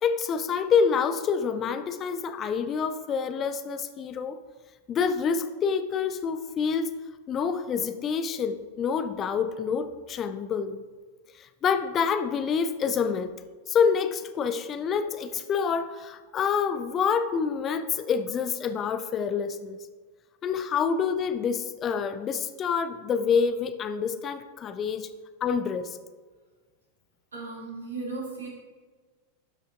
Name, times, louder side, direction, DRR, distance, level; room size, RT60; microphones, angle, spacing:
voice 1, 0.0-4.4 4.9-6.9 7.3-10.8 11.4-13.3 13.7-19.8 20.4-25.1 25.4-26.0, left 6 dB, 30° left, 10 dB, 0.4 m, -27 dB
voice 2, 27.3-28.5, right 3 dB, 70° right, -3 dB, 2.3 m, -36 dB
12.0 x 5.1 x 2.5 m, 1.5 s
figure-of-eight pair, 90°, 0 cm